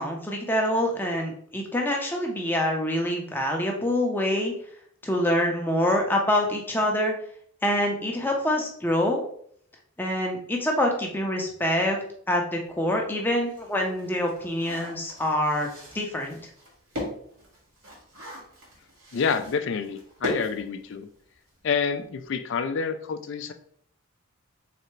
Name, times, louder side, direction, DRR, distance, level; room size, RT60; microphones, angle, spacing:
voice 1, 0.0-4.5 5.0-7.1 7.6-9.2 10.0-12.0 12.3-15.7 15.9-16.4, left 1 dB, 10° left, 1 dB, 0.6 m, -25 dB
sound 1, 12.7-12.8 13.3-21.3 21.6-21.7 22.0-22.2, left 1 dB, 65° right, 1.7 m, -39 dB
voice 2, 19.1-21.1 21.6-23.5, left 5 dB, 60° left, 9 dB, 0.3 m, -28 dB
3.8 x 3.3 x 3.1 m, 0.63 s
head